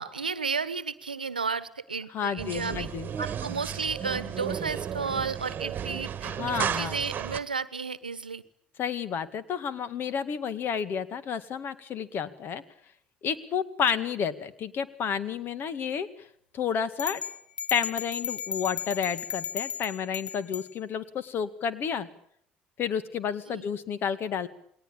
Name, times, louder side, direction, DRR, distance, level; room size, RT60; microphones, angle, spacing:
voice 1, 0.0-2.9 3.2-8.4 23.5-23.7, right 5 dB, 90° right, 16 dB, 1.1 m, -33 dB
voice 2, 2.1-3.1 6.2-6.9 8.8-12.6 13.2-16.1 16.5-17.2 17.7-22.1 22.8-24.5, left 7 dB, 50° left, 15 dB, 2.1 m, -30 dB
sound 1, 2.4-7.4, right 8 dB, 40° right, 1.5 m, -33 dB
sound 2, 17.0-20.7, left 7 dB, 85° left, 1.1 m, -35 dB
29.0 x 20.5 x 8.9 m, 0.68 s
figure-of-eight pair, 55°, 5 cm